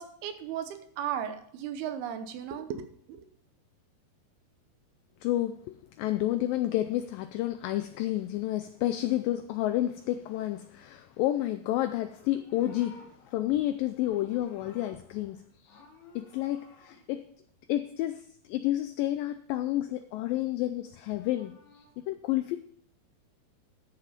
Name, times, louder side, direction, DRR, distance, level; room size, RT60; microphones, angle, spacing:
voice 1, 0.0-2.8 3.1-3.2, right 9 dB, 80° right, 2.8 m, -35 dB
voice 2, 5.2-15.8 16.2-17.2 17.7-22.6, left 14 dB, 85° left, 2.0 m, -30 dB
Livestock farm animals working animals, 11.9-15.4 15.6-17.0 20.7-21.9, left 3 dB, 55° left, 3.0 m, -56 dB
13.0 x 6.6 x 5.1 m
omnidirectional pair, 4.6 m